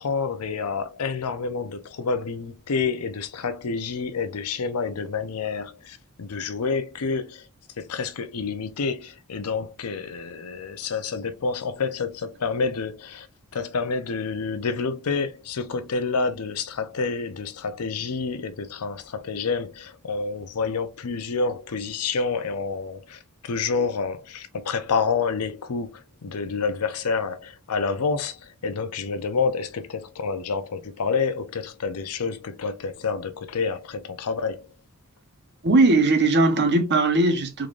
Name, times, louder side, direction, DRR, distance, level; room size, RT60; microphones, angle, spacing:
voice 1, 0.0-7.5 7.8-13.3 13.5-34.6, left 5 dB, 80° left, 0.6 m, -28 dB
voice 2, 35.6-37.7, right 2 dB, 50° right, 0.9 m, -19 dB
3.7 x 3.2 x 2.5 m
head